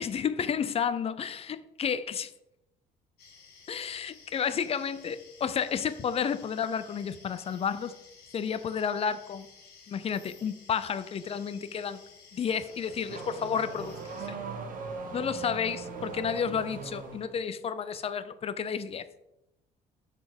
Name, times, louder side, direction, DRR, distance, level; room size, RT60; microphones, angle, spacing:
voice 1, 0.0-2.3 3.7-8.0 8.3-9.5 9.9-12.0 12.3-14.4 15.1-19.1, left 7 dB, 35° left, 0.5 m, -31 dB
sound 1, 3.2-14.3, left 5 dB, 70° left, 1.4 m, -54 dB
Car / Accelerating revving vroom, 12.4-17.4, right 4 dB, 55° right, 1.3 m, -40 dB
6.2 x 4.1 x 5.1 m
cardioid pair, 110°, 17 cm